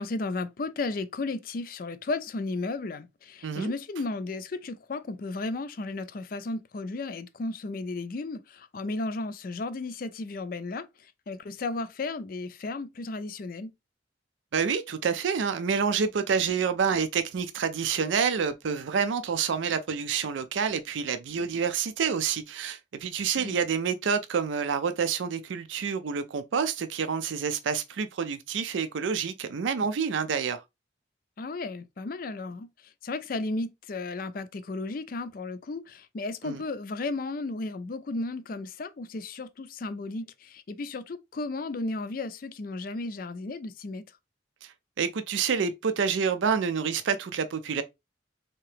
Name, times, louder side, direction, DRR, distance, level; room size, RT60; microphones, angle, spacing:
voice 1, 0.0-13.7 23.4-23.6 31.4-44.1, left 3 dB, 45° left, 0.4 m, -34 dB
voice 2, 14.5-30.6 36.4-36.6 44.6-47.8, right 6 dB, 80° right, 0.4 m, -28 dB
3.7 x 2.8 x 3.2 m
head